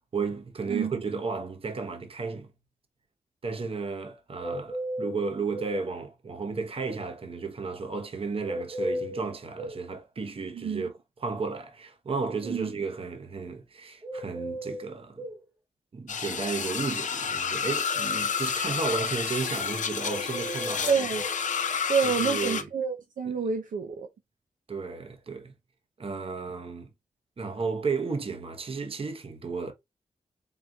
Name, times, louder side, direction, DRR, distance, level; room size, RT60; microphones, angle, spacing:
voice 1, 0.0-2.5 3.4-10.9 11.2-15.2 15.9-20.9 22.0-22.7 23.3-23.4 24.7-25.5 26.0-26.9 27.4-29.7, right 4 dB, 45° right, 0.9 m, -33 dB
sound 1, 4.4-5.8 8.4-9.8 14.0-15.4 20.0-21.4, equal, 15° right, 0.9 m, -35 dB
voice 2, 10.5-10.9 12.4-12.7 20.8-21.2 21.9-24.1, right 6 dB, 85° right, 0.7 m, -28 dB
sound 2, 16.1-22.6, left 6 dB, 70° left, 0.6 m, -30 dB
4.3 x 4.0 x 2.3 m
wide cardioid pair, 145°, 13 cm